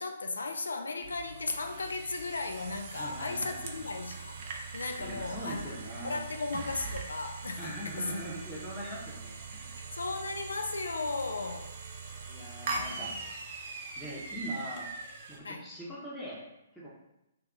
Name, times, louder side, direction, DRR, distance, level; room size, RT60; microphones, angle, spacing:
voice 1, 0.0-4.4 4.7-5.6 6.0-8.1 9.9-11.7 12.8-13.2 15.4-15.7, left 3 dB, 75° left, 6 dB, 0.4 m, -36 dB
sound 1, 1.0-15.4, right 4 dB, 45° right, 0.5 m, -41 dB
voice 2, 2.9-3.8 5.0-6.3 7.6-9.8 12.3-13.1 14.0-14.9 15.3-16.4 16.7-16.9, right 1 dB, ahead, -9 dB, 0.9 m, -41 dB
2.8 x 2.5 x 3.5 m, 0.91 s
figure-of-eight pair, 125°, 0 cm